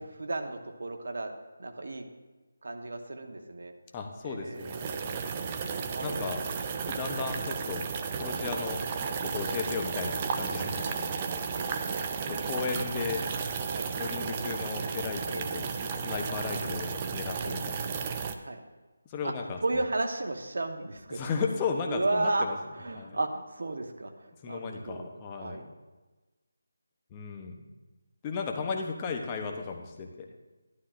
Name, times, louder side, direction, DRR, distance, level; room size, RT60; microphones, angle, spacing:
voice 1, 0.0-1.3 1.6-2.0 2.6-3.7 4.2-6.2 11.5-11.7 13.7-13.9 15.3-15.4 17.4-17.6 18.5-18.6 19.2-19.3 19.6-21.2 21.9-22.4 22.8-24.1 24.4-25.1 25.4-25.6, right 2 dB, 65° right, 4 dB, 1.1 m, -33 dB
voice 2, 3.9-4.8 6.0-6.4 6.9-8.8 9.2-11.4 11.9-13.2 13.9-18.1 19.1-19.8 21.1-22.6 22.9-23.2 24.4-25.7 27.1-27.6 28.2-30.3, left 5 dB, 15° left, 2 dB, 0.8 m, -35 dB
sound 1, 4.6-18.3, right 5 dB, 20° right, 0.4 m, -33 dB
11.5 x 11.5 x 2.5 m, 1.2 s
figure-of-eight pair, 170°, 0 cm